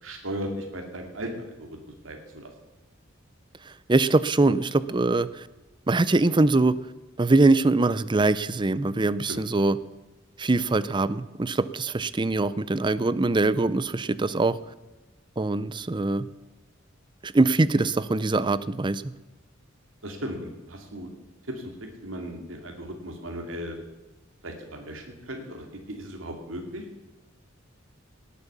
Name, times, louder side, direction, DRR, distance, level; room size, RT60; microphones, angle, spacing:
voice 1, 0.0-1.8 2.0-2.5 9.3-9.4 20.0-21.1 21.5-23.8 24.4-26.9, equal, 90° right, 3 dB, 2.4 m, -36 dB
voice 2, 3.9-5.3 5.9-6.8 7.2-9.8 10.4-14.6 15.4-16.3 17.2-19.0, right 2 dB, 25° right, 16 dB, 0.5 m, -22 dB
18.5 x 8.5 x 6.8 m, 1.1 s
head